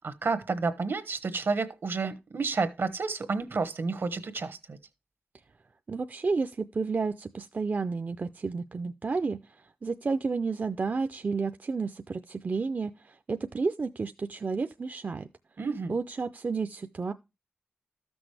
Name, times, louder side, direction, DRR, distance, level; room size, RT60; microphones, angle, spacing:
voice 1, 0.0-4.8 15.6-15.9, right 4 dB, 70° right, 1.2 m, -30 dB
voice 2, 5.9-9.4 9.8-15.3 15.9-17.1, right 4 dB, 45° right, 0.4 m, -31 dB
13.5 x 6.1 x 3.3 m
wide cardioid pair, 115°, 4 cm